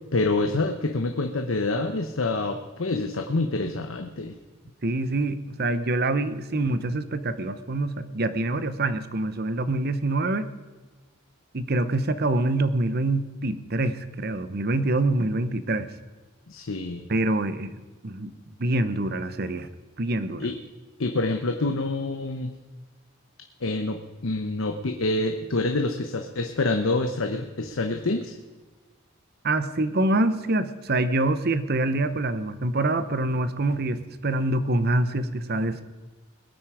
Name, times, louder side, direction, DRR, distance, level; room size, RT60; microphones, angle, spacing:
voice 1, 0.1-4.3 16.5-17.0 20.4-20.6 21.0-22.5 23.6-28.3, left 2 dB, 70° left, 5 dB, 0.9 m, -27 dB
voice 2, 4.8-10.5 11.5-15.9 17.1-17.8 18.0-18.3 18.6-19.7 20.0-20.5 29.4-35.8, right 2 dB, 50° right, 12 dB, 0.8 m, -25 dB
21.0 x 9.1 x 4.9 m, 1.3 s
head